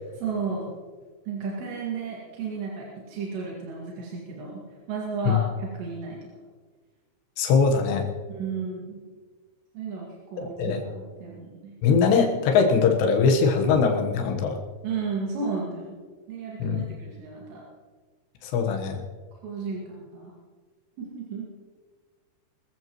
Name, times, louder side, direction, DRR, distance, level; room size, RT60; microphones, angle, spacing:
voice 1, 0.2-0.7 1.3-4.6 4.9-6.2 8.3-9.0 9.7-11.7 14.8-16.0 16.3-17.6 19.4-20.3 21.0-21.5, right 5 dB, 85° right, -4 dB, 4.4 m, -33 dB
voice 2, 7.4-8.1 10.6-10.8 11.8-14.6 16.6-16.8 18.4-19.0, left 5 dB, 80° left, 3 dB, 3.4 m, -21 dB
23.5 x 14.5 x 3.1 m, 1.5 s
omnidirectional pair, 4.8 m